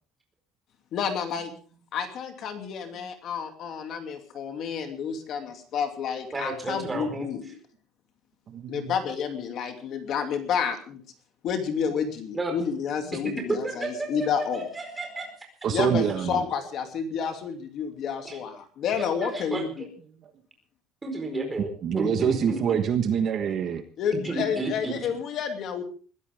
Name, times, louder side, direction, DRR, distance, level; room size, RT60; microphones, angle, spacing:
voice 1, 0.9-1.5 1.9-7.4 8.7-11.0 11.4-14.7 15.7-19.8 24.0-25.8, left 7 dB, 40° left, 6 dB, 2.7 m, -30 dB
voice 2, 6.3-7.3 12.3-12.6 13.5-15.3 18.2-18.4 19.0-19.9 21.0-22.8 24.2-24.9, right 2 dB, 10° right, 3 dB, 4.7 m, -32 dB
voice 3, 8.5-8.9 15.6-16.4 21.8-23.8, right 8 dB, 35° right, 7 dB, 1.4 m, -25 dB
21.5 x 15.5 x 3.6 m, 0.39 s
cardioid pair, 180°, 0 cm